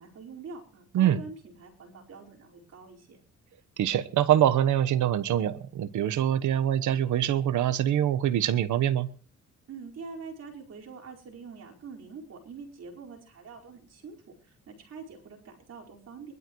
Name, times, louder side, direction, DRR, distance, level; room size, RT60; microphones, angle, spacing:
voice 1, 0.0-3.2 9.7-14.2 14.4-16.3, right 4 dB, 55° right, 4.9 m, -45 dB
voice 2, 3.8-9.1, right 11 dB, 75° right, 1.2 m, -24 dB
23.5 x 12.5 x 3.2 m
cardioid pair, 90°, 30 cm